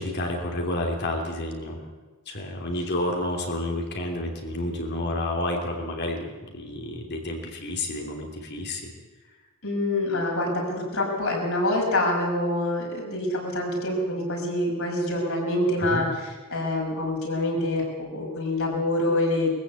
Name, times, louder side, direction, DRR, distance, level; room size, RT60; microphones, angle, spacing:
voice 1, 0.0-1.9 2.3-8.9 15.8-16.1, left 1 dB, 50° left, 1 dB, 3.0 m, -30 dB
voice 2, 9.6-19.5, left 1 dB, 65° left, -2 dB, 6.3 m, -26 dB
21.5 x 15.0 x 8.4 m, 1.3 s
head